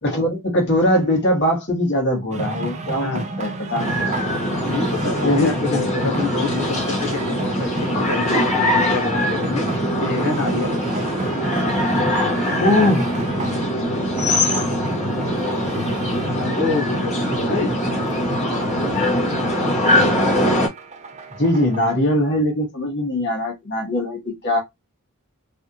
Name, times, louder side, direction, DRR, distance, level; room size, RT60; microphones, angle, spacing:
voice 1, 0.0-3.1 3.4-3.9 5.2-5.5 12.6-13.2 21.4-24.6, left 1 dB, 50° left, 1.7 m, -20 dB
sound 1, 2.3-21.9, right 2 dB, 30° right, 0.5 m, -32 dB
sound 2, 3.8-20.7, left 1 dB, 30° left, 1.1 m, -22 dB
voice 2, 4.6-9.6 10.0-10.7 16.4-17.7, left 3 dB, 70° left, 1.1 m, -26 dB
3.4 x 2.5 x 2.8 m
head